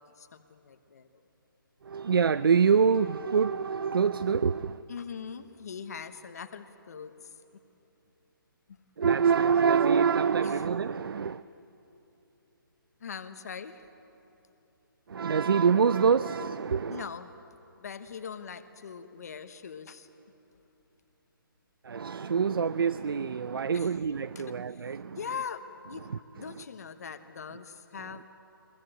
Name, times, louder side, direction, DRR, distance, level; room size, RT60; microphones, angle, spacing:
voice 1, 0.1-1.2 4.9-7.4 8.7-8.8 10.4-10.6 13.0-13.9 16.9-17.3 17.8-20.1 23.7-23.9 24.3-28.3, left 6 dB, 45° left, 9 dB, 1.2 m, -42 dB
voice 2, 1.8-4.8 9.0-11.4 15.1-17.0 21.8-25.2 26.1-26.2, right 6 dB, 75° right, 15 dB, 0.6 m, -25 dB
22.5 x 22.0 x 9.0 m, 2.9 s
hypercardioid pair, 175°, 12 cm